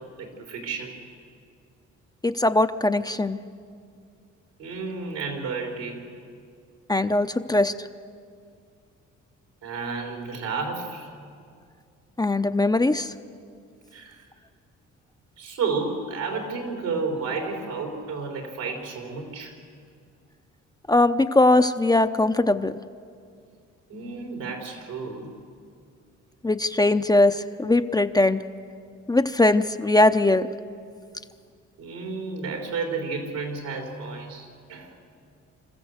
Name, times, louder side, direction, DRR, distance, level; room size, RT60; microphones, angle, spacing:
voice 1, 0.2-1.0 4.6-6.0 9.6-11.1 13.9-14.2 15.4-19.5 23.9-25.3 31.8-34.9, right 4 dB, 90° right, 2 dB, 4.3 m, -31 dB
voice 2, 2.2-3.4 6.9-7.7 12.2-13.1 20.9-22.7 26.4-28.4 29.1-30.5, left 2 dB, 15° left, 9 dB, 0.6 m, -20 dB
26.5 x 14.5 x 8.0 m, 2.3 s
cardioid pair, 90°, 30 cm